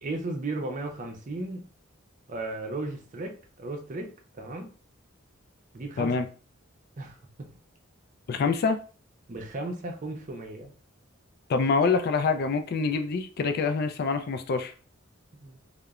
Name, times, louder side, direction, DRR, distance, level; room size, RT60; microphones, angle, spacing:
voice 1, 0.0-1.6 2.3-4.7 5.7-6.1 7.0-7.5 9.3-10.7 15.4-15.6, right 2 dB, 40° right, 3 dB, 0.5 m, -35 dB
voice 2, 8.3-8.8 11.5-14.7, left 4 dB, 50° left, 8 dB, 0.3 m, -25 dB
2.9 x 2.0 x 2.3 m, 0.37 s
head